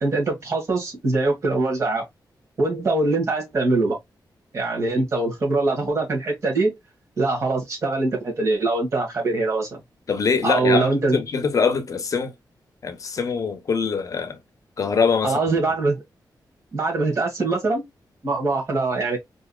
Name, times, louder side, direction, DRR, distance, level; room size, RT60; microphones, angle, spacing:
voice 1, 0.0-2.0 2.6-4.0 4.5-6.7 7.2-9.8 10.4-11.2 15.2-16.0 16.7-17.8 18.2-19.2, right 3 dB, 40° right, 1.5 m, -23 dB
voice 2, 10.1-12.3 12.8-14.4 14.8-15.6, left 5 dB, 50° left, 0.7 m, -23 dB
4.6 x 2.8 x 2.2 m
wide cardioid pair, 175°, 8 cm